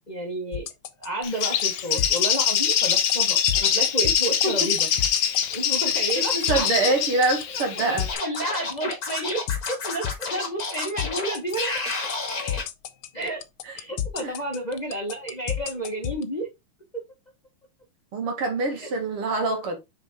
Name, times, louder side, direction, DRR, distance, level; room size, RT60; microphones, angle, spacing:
voice 1, 0.1-0.7 1.0-4.9 5.5-7.0 7.8-9.4 9.7-12.1 13.1-13.4 13.7-16.5 18.7-18.9, right 1 dB, 25° left, 1.0 m, -31 dB
sound 1, 0.5-16.2, left 11 dB, 85° left, 1.7 m, -31 dB
Bird, 1.2-8.1, left 8 dB, 60° left, 1.5 m, -24 dB
voice 2, 6.2-8.1 13.6-13.8 14.2-14.4 18.1-19.8, right 3 dB, 85° right, 2.8 m, -25 dB
Scratching (performance technique), 8.1-12.6, left 3 dB, 45° left, 2.3 m, -31 dB
6.3 x 5.0 x 3.5 m
omnidirectional pair, 2.4 m